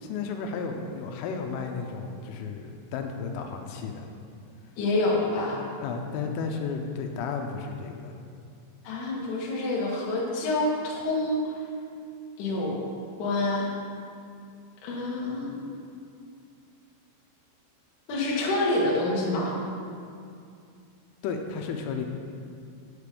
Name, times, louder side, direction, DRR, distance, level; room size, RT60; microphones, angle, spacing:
voice 1, 0.0-4.1 5.8-8.2 21.2-22.0, left 5 dB, 85° left, 4 dB, 3.2 m, -33 dB
voice 2, 4.8-5.6 8.8-11.5 12.4-12.8 13.2-13.7 14.8-15.8 18.1-19.6, left 2 dB, 60° left, -4 dB, 2.3 m, -27 dB
8.3 x 8.3 x 5.1 m, 2.4 s
omnidirectional pair, 5.6 m